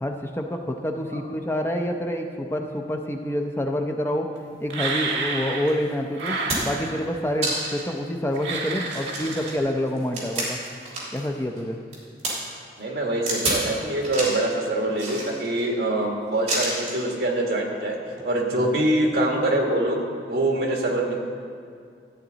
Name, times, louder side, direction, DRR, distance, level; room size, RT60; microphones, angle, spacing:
voice 1, 0.0-4.3 4.6-10.6 11.1-11.8 18.5-18.7, left 1 dB, 10° left, 3 dB, 0.5 m, -27 dB
sound 1, 4.7-5.8 6.1-7.2 8.4-9.6, right 3 dB, 90° right, 1.6 m, -30 dB
sound 2, 5.7-5.8 6.2-6.9 7.4-7.9 8.3-8.4 8.8-11.3 11.6-12.3 13.3-13.7 14.0-14.4 14.9-15.6 16.5-17.0 18.1-18.2, right 2 dB, 35° right, 3.0 m, -29 dB
voice 2, 12.8-18.0 18.2-20.0 20.3-21.2, right 1 dB, 65° right, 0 dB, 1.6 m, -24 dB
13.5 x 8.9 x 3.9 m, 2.3 s
head